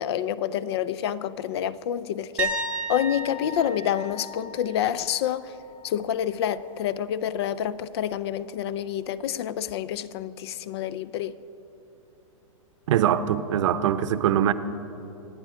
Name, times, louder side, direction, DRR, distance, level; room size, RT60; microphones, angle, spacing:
voice 1, 0.0-5.5 5.8-11.4, left 10 dB, 50° left, 0.5 m, -28 dB
sound 1, 2.4-6.1 6.5-6.8 9.7-9.8, right 3 dB, 10° right, 1.1 m, -34 dB
voice 2, 12.9-14.5, right 10 dB, 60° right, 0.8 m, -22 dB
25.5 x 10.0 x 5.0 m
hypercardioid pair, 160°, 18 cm